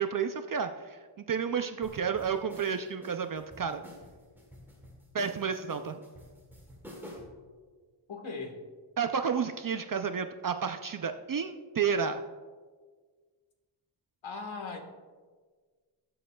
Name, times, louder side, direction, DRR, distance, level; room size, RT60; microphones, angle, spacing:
voice 1, 0.0-3.8 5.1-6.0 9.0-12.2, right 6 dB, 45° right, 7 dB, 0.4 m, -31 dB
sound 1, 1.8-7.4, left 1 dB, 5° right, 2.0 m, -49 dB
voice 2, 8.1-8.6 14.2-14.8, left 4 dB, 70° left, 4 dB, 1.5 m, -38 dB
19.5 x 7.8 x 2.3 m, 1.5 s
wide cardioid pair, 165°, 48 cm